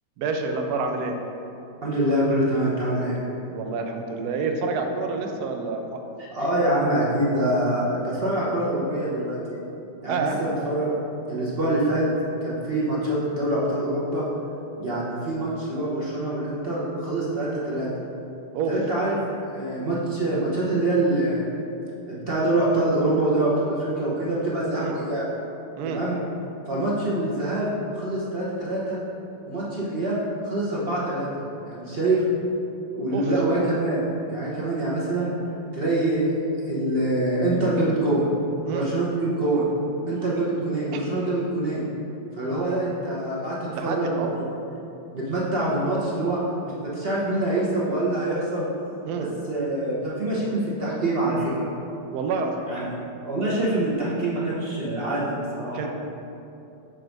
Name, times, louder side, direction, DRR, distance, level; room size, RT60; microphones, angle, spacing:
voice 1, 0.2-1.1 3.5-6.0 10.1-10.4 18.5-18.8 24.8-25.0 25.8-26.0 33.1-33.3 38.6-38.9 40.9-41.0 43.8-44.4 49.0-49.3 52.1-52.7 55.7-55.9, right 4 dB, 70° right, 4 dB, 1.0 m, -28 dB
voice 2, 1.8-3.2 6.3-9.4 10.0-10.9 11.3-12.0 12.4-14.2 14.8-17.9 18.7-21.4 22.1-25.2 25.9-26.2 26.7-29.0 29.5-31.3 31.6-32.2 32.9-35.3 35.7-36.3 36.7-38.3 38.7-39.7 40.1-41.9 42.3-44.4 45.1-46.4 46.8-48.7 49.5-51.7 52.7-52.9 53.2-55.9, right 1 dB, 40° right, -7 dB, 0.9 m, -25 dB
6.4 x 3.9 x 4.5 m, 2.8 s
omnidirectional pair, 2.0 m